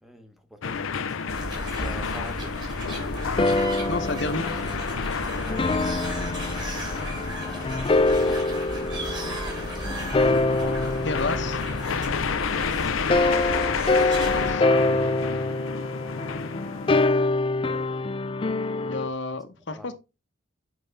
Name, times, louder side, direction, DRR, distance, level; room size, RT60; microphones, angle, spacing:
voice 1, 0.0-1.3 1.6-2.6 7.4-11.0 18.8-19.1 19.7-19.9, equal, ahead, 1.1 m, -46 dB
sound 1, 0.6-17.1, left 5 dB, 80° left, 0.6 m, -31 dB
sound 2, 1.3-14.5, right 1 dB, 20° right, 2.3 m, -34 dB
sound 3, 2.9-12.5 13.1-19.1, left 2 dB, 25° left, 0.4 m, -26 dB
voice 2, 3.9-4.5 11.0-11.6 13.9-14.7 18.8-19.9, left 3 dB, 60° left, 1.0 m, -31 dB
7.6 x 5.2 x 3.4 m
head